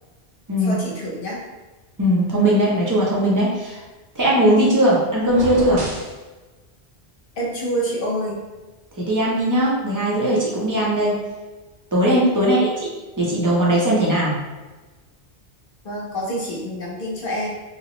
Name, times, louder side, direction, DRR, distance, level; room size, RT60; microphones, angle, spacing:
voice 1, 0.5-1.4 7.4-8.4 12.3-12.7 15.8-17.5, equal, 60° left, -4 dB, 0.9 m, -27 dB
voice 2, 2.0-3.8 4.2-5.8 9.0-11.1 11.9-12.9 13.2-14.4, right 1 dB, 25° right, -5 dB, 0.4 m, -19 dB
sound 1, 5.2-6.2, equal, 75° right, 0.9 m, -30 dB
2.8 x 2.0 x 2.9 m, 1.2 s
omnidirectional pair, 1.1 m